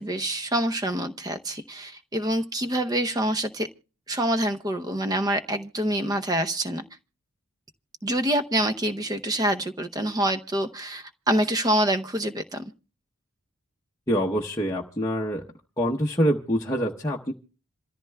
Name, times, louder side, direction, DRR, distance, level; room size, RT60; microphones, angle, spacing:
voice 1, 0.0-3.7 4.1-6.8 8.0-12.6, right 1 dB, 15° right, 9 dB, 0.6 m, -26 dB
voice 2, 14.1-15.4 15.8-17.3, equal, 15° left, -2 dB, 0.8 m, -25 dB
27.0 x 14.0 x 2.2 m, 0.35 s
head